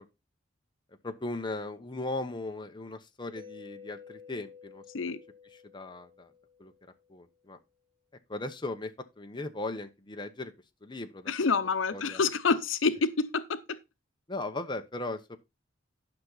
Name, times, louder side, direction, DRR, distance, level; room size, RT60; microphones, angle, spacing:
voice 1, 1.0-4.8 5.5-6.3 6.6-6.7 7.1-7.6 8.3-10.5 10.8-11.3 11.9-12.2 14.3-15.4, left 2 dB, 25° left, 1.0 m, -37 dB
Mallet percussion, 3.4-7.1, left 6 dB, 25° right, 0.8 m, -51 dB
voice 2, 11.3-13.8, left 4 dB, 85° left, 0.7 m, -28 dB
11.0 x 6.0 x 4.0 m
head